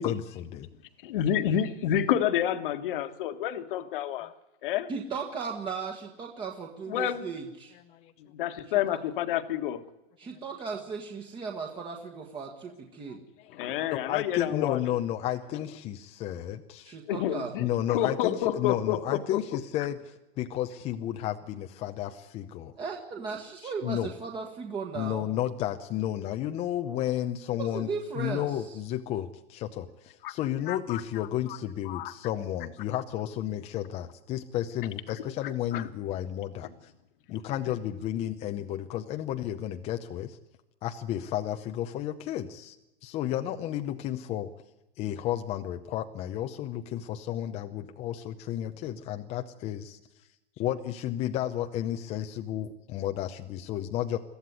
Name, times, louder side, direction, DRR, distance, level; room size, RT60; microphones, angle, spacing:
voice 1, 1.1-4.3 4.6-4.9 6.9-7.3 8.3-9.9 13.5-14.9 17.1-19.4 30.2-30.4 30.7-31.3 31.9-32.1 35.2-35.9, left 10 dB, 50° left, 1.7 m, -29 dB
voice 2, 4.9-7.7 8.7-9.0 10.2-13.2 16.8-17.5 22.8-25.3 27.6-28.6, right 5 dB, 15° right, 1.5 m, -36 dB
voice 3, 13.1-13.6 13.9-17.0 17.6-22.7 23.6-24.1 24.9-27.9 28.2-36.9 37.3-40.4 40.8-42.8 43.0-44.5 45.0-50.0 50.6-54.2, left 12 dB, 20° left, 0.7 m, -32 dB
22.5 x 14.5 x 9.6 m
hypercardioid pair, 155°, 35 cm